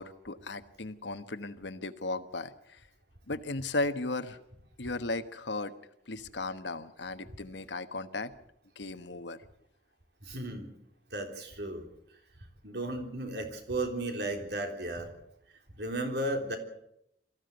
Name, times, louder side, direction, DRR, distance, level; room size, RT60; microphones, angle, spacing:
voice 1, 0.0-2.8 3.3-4.4 4.8-5.7 6.1-8.3 8.8-9.4 10.3-10.4, left 2 dB, 75° left, 10 dB, 1.3 m, -36 dB
voice 2, 10.2-10.7 11.1-11.8 12.6-15.1 15.8-16.6, right 1 dB, 60° right, 4 dB, 3.5 m, -34 dB
23.5 x 15.0 x 8.0 m, 0.79 s
head